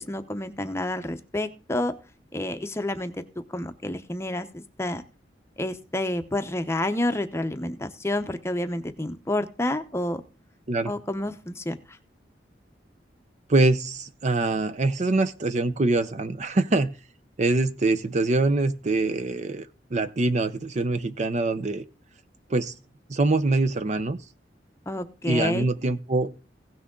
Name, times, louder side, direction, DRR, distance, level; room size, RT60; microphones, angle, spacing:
voice 1, 0.0-1.9 2.3-3.1 3.5-5.0 5.6-10.2 10.9-11.8 24.9-25.7, left 1 dB, 15° left, 0.7 m, -29 dB
voice 2, 13.5-16.9 17.4-21.8 22.5-22.7 23.1-24.2 25.3-26.3, right 2 dB, 40° right, 0.6 m, -24 dB
16.5 x 6.2 x 3.7 m
head